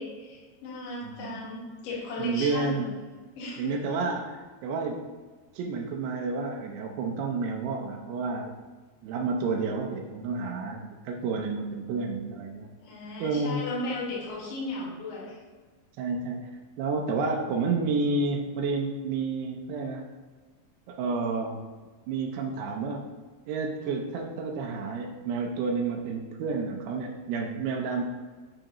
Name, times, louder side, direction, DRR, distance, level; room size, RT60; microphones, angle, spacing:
voice 1, 0.0-2.9 3.4-4.0 12.8-15.4, left 2 dB, 85° left, -5 dB, 4.0 m, -36 dB
voice 2, 1.0-1.4 2.2-2.9 3.6-5.1 5.5-8.6 9.0-12.7 13.2-13.7 16.0-16.5 16.8-20.1 20.9-21.6 22.1-23.0 23.5-28.0, right 4 dB, 80° right, 1 dB, 2.6 m, -30 dB
8.6 x 5.0 x 3.0 m, 1.4 s
omnidirectional pair, 5.1 m